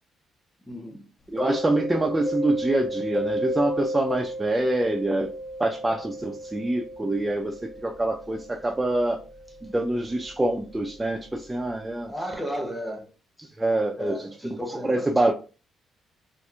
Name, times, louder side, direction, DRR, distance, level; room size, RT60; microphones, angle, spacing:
voice 1, 0.7-1.0 12.1-13.1 13.4-13.5 13.9-15.3, equal, ahead, 0.9 m, -34 dB
voice 2, 1.3-5.3 5.6-9.2 9.6-12.1 13.6-14.6 14.8-15.3, right 1 dB, 15° right, 0.4 m, -25 dB
Mallet percussion, 1.4-11.0, equal, 40° left, 0.8 m, -34 dB
4.2 x 2.5 x 2.3 m
cardioid pair, 90°, 0 cm